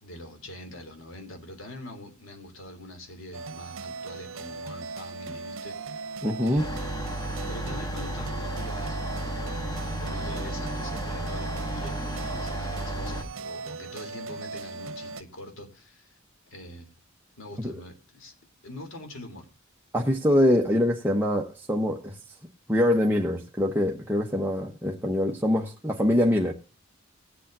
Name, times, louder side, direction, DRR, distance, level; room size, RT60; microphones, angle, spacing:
voice 1, 0.0-16.2 16.5-16.9 17.4-18.3 18.6-19.5, left 1 dB, 80° left, 3.4 m, -44 dB
sound 1, 3.3-15.2, right 4 dB, 80° right, 0.8 m, -38 dB
voice 2, 6.2-6.6 17.6-17.7 19.9-22.2 22.7-26.5, left 1 dB, 10° right, 1.0 m, -24 dB
sound 2, 6.6-13.2, right 1 dB, 20° left, 1.3 m, -33 dB
19.5 x 8.3 x 2.7 m
head